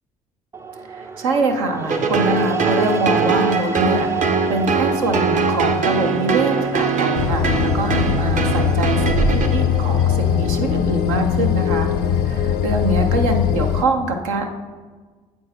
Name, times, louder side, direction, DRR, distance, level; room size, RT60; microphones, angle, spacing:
sound 1, 0.5-12.8, right 6 dB, 15° right, 0.4 m, -32 dB
voice 1, 0.9-14.5, right 2 dB, 90° right, 4 dB, 0.7 m, -24 dB
sound 2, 1.9-10.0, right 4 dB, 50° right, 0.8 m, -21 dB
sound 3, 7.1-13.8, left 8 dB, 70° left, 0.5 m, -20 dB
7.8 x 4.6 x 4.2 m, 1.4 s
hypercardioid pair, 60°, 17 cm